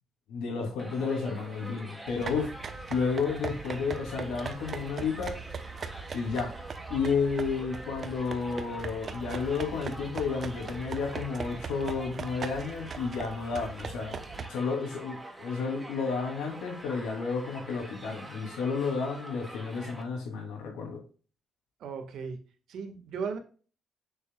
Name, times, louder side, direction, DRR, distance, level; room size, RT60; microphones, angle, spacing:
voice 1, 0.3-2.5 2.9-5.3 6.1-6.5 6.9-14.2 14.5-21.0, left 5 dB, 90° left, 1 dB, 2.9 m, -31 dB
Crowd, 0.8-20.0, right 1 dB, 10° right, 2.0 m, -46 dB
sound 1, 2.1-14.5, right 5 dB, 45° right, 0.9 m, -40 dB
voice 2, 21.8-22.4 22.7-23.4, right 5 dB, 75° right, 5 dB, 1.7 m, -36 dB
6.9 x 6.8 x 2.4 m, 0.38 s
cardioid pair, 90°, 0 cm